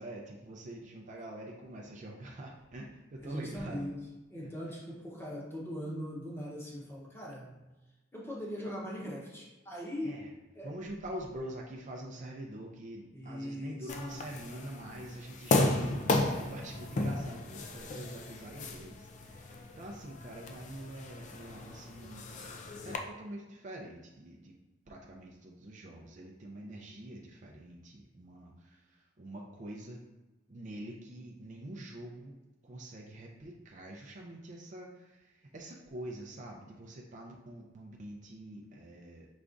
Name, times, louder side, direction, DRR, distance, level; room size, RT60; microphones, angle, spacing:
voice 1, 0.0-3.8 10.0-10.3 10.6-22.3 22.8-24.5 24.9-30.0 30.5-32.3 32.6-39.3, right 1 dB, 40° right, -1 dB, 0.5 m, -45 dB
voice 2, 3.2-4.0 4.3-7.6 8.1-10.2 10.6-10.8 13.1-14.3, equal, 15° left, -4 dB, 0.9 m, -40 dB
sound 1, 13.9-23.0, left 2 dB, 40° left, 0.4 m, -34 dB
4.9 x 3.4 x 2.5 m, 1.1 s
head